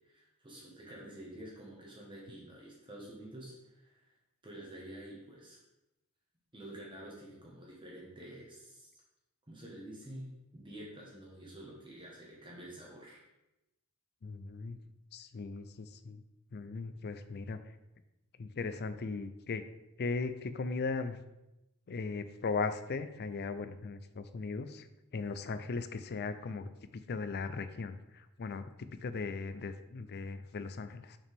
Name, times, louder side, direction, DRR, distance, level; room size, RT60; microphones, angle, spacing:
voice 1, 0.0-4.1 4.4-5.6 6.5-8.9 9.5-13.2, right 1 dB, 20° right, -4 dB, 1.4 m, -49 dB
voice 2, 14.2-14.8 15.1-16.2 16.5-17.6 18.4-19.6 20.0-21.2 21.9-24.9 25.1-26.7 27.1-31.2, left 4 dB, 50° left, 11 dB, 0.5 m, -38 dB
7.0 x 5.9 x 3.5 m, 0.93 s
head